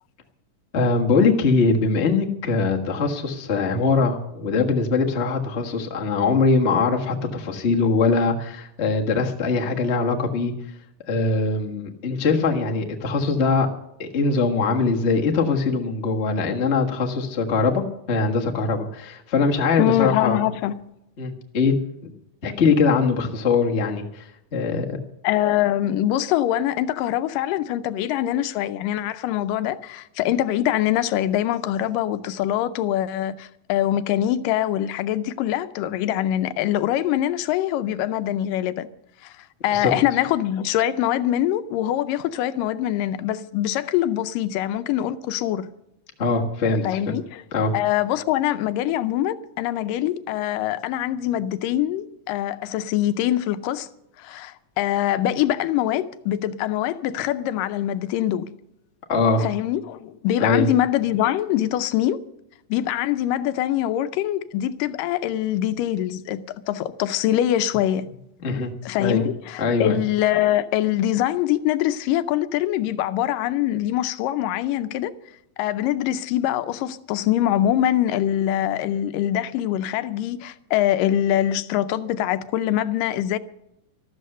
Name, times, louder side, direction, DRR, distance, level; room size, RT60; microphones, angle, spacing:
voice 1, 0.7-10.5 11.1-13.7 14.0-17.8 18.1-20.4 21.2-21.7 22.0-22.1 22.4-24.2 24.5-25.0 39.7-39.9 46.2-47.1 47.5-47.7 59.1-59.5 60.4-60.7 68.4-68.7 69.0-69.2 69.6-70.0, left 4 dB, 45° left, 0.8 m, -22 dB
voice 2, 19.8-20.8 25.2-38.9 39.2-39.3 39.6-45.7 46.7-47.4 47.7-53.9 54.2-58.5 59.4-62.2 62.7-68.2 68.8-75.1 75.6-83.4, left 12 dB, 85° left, 2.3 m, -23 dB
13.0 x 12.5 x 6.6 m
omnidirectional pair, 3.8 m